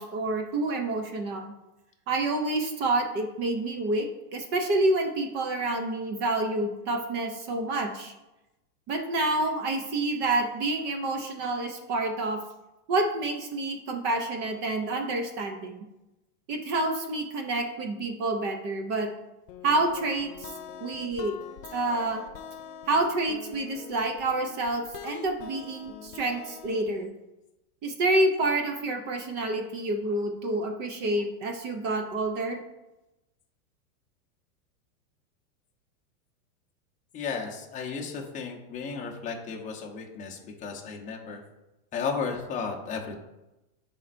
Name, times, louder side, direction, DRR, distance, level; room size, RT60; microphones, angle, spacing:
voice 1, 0.0-1.5 2.1-8.1 8.9-12.4 12.9-15.9 16.5-19.1 19.6-20.5 20.8-21.3 21.7-22.2 22.9-27.1 27.8-32.6, right 2 dB, 25° right, 4 dB, 0.5 m, -28 dB
sound 1, 19.5-27.1, left 8 dB, 75° left, 0.8 m, -44 dB
voice 2, 37.1-41.4 41.9-43.2, left 5 dB, 15° left, 0 dB, 0.8 m, -34 dB
10.5 x 4.3 x 2.5 m, 0.98 s
supercardioid pair, 150°, 46 cm